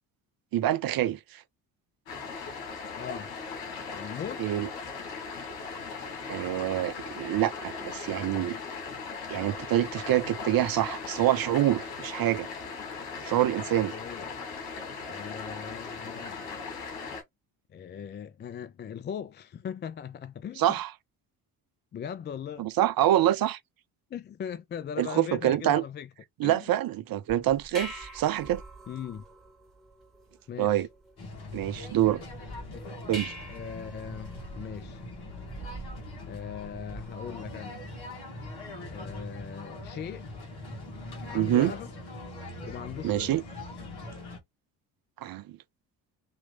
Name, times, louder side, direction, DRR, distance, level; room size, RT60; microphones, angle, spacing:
voice 1, 0.5-1.4 4.4-4.7 6.3-8.5 9.3-12.5 13.2-13.9 20.6-20.9 22.6-23.6 25.0-25.8 26.4-28.6 30.6-30.9 31.5-32.2 33.1-33.3 41.3-41.7 43.0-43.4 45.2-45.6, right 13 dB, 45° right, 0.7 m, -26 dB
sound 1, 2.1-17.2, left 5 dB, 80° left, 2.2 m, -38 dB
voice 2, 2.9-3.3 3.9-4.5 13.9-14.3 15.1-16.4 17.7-20.8 21.9-22.7 24.1-26.1 26.4-26.7 28.9-29.2 30.5-30.9 32.7-32.8 33.5-35.0 36.2-37.8 38.9-40.3 41.3-41.9 42.6-43.3, left 8 dB, 25° left, 0.4 m, -39 dB
sound 2, 27.3-37.3, right 1 dB, ahead, 1.9 m, -45 dB
sound 3, 31.2-44.4, left 2 dB, 50° left, 2.2 m, -42 dB
3.7 x 3.0 x 3.8 m
hypercardioid pair, 55°, 47 cm